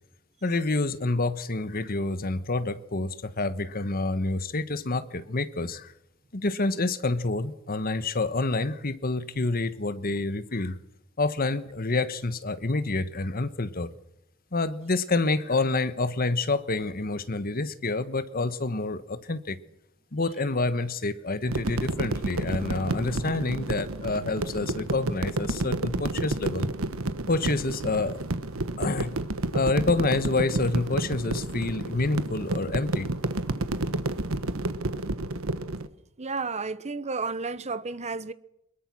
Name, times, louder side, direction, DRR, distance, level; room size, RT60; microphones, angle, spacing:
voice 1, 0.4-5.9 6.3-10.8 11.2-13.9 14.5-19.6 20.1-26.7 27.3-28.2 28.8-29.2 29.5-33.1, left 3 dB, 45° left, 1.3 m, -28 dB
sound 1, 21.5-35.9, right 2 dB, 85° right, 1.4 m, -30 dB
voice 2, 36.2-38.3, right 4 dB, 35° right, 1.0 m, -32 dB
23.0 x 22.0 x 6.3 m
head